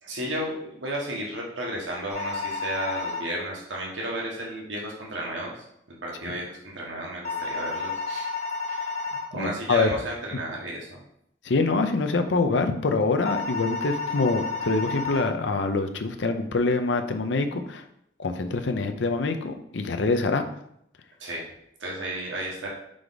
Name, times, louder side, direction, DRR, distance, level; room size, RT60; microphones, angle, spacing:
voice 1, 0.0-5.6 6.0-8.3 8.7-8.9 9.3-11.0 21.2-21.5 21.8-22.7, right 1 dB, 85° right, -2 dB, 1.6 m, -33 dB
sound 1, 2.1-3.2 7.2-9.2 13.3-15.2, left 4 dB, 40° left, 1.0 m, -31 dB
voice 2, 9.3-9.9 11.4-17.8 18.2-20.4, left 3 dB, 70° left, 7 dB, 0.6 m, -25 dB
5.0 x 4.8 x 4.0 m, 0.73 s
head